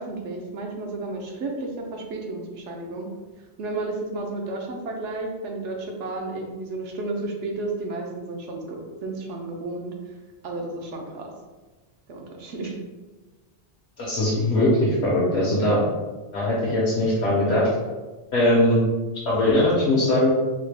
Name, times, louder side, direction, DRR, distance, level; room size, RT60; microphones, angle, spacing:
voice 1, 0.0-3.1 3.6-9.9 10.4-11.3 12.1-12.7, right 2 dB, 85° right, 1 dB, 1.0 m, -32 dB
voice 2, 14.0-15.8 16.3-17.7 18.3-18.8 19.2-20.3, left 1 dB, 80° left, -8 dB, 1.1 m, -20 dB
4.0 x 2.1 x 3.3 m, 1.3 s
omnidirectional pair, 1.2 m